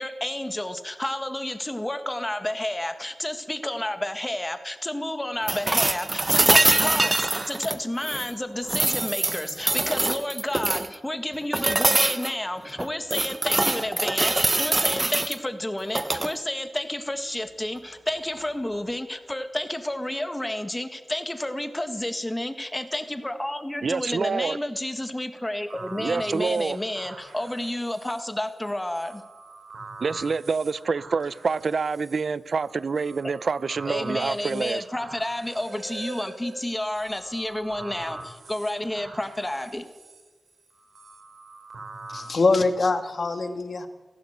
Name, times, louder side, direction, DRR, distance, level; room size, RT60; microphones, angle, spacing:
voice 1, 0.0-29.2 33.8-39.9, left 1 dB, 10° left, 1.6 m, -30 dB
sound 1, 5.5-8.3 8.7-10.9 11.5-12.3 12.8-15.4 15.9-16.3 18.3-18.4, right 2 dB, 25° right, 1.0 m, -23 dB
voice 2, 23.8-24.6 26.0-26.8 30.0-34.8, right 4 dB, 60° right, 0.6 m, -27 dB
sound 2, 25.7-42.4, right 3 dB, 85° right, 4.3 m, -44 dB
voice 3, 42.1-43.9, left 3 dB, 50° left, 2.1 m, -23 dB
25.5 x 16.0 x 8.0 m
wide cardioid pair, 115°, 0 cm